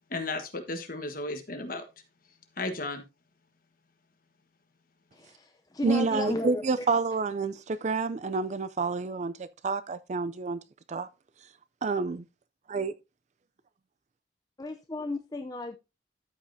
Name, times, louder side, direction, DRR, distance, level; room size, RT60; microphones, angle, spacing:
voice 1, 0.1-1.8 2.6-3.0, left 2 dB, 50° left, 1.4 m, -34 dB
voice 2, 5.1-6.9 14.6-15.8, left 2 dB, 20° left, 0.5 m, -35 dB
voice 3, 5.8-10.6 10.9-11.1 11.8-12.2 12.7-12.9, right 4 dB, 40° right, 0.4 m, -29 dB
13.0 x 5.4 x 2.7 m
head